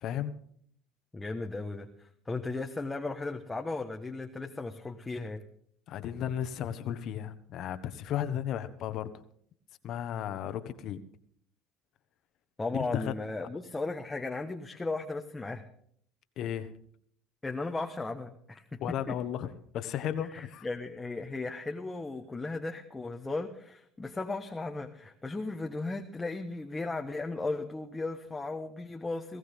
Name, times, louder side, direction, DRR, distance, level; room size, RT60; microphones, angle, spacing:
voice 1, 0.0-0.3 5.9-9.1 9.8-11.0 12.7-13.1 16.4-16.7 18.8-20.7, left 10 dB, 55° left, 11 dB, 1.4 m, -34 dB
voice 2, 1.1-5.4 12.6-15.7 17.4-18.8 19.1-19.2 20.3-29.4, left 3 dB, 15° left, 3 dB, 1.3 m, -36 dB
19.5 x 16.0 x 3.7 m, 0.64 s
hypercardioid pair, 80°, 0 cm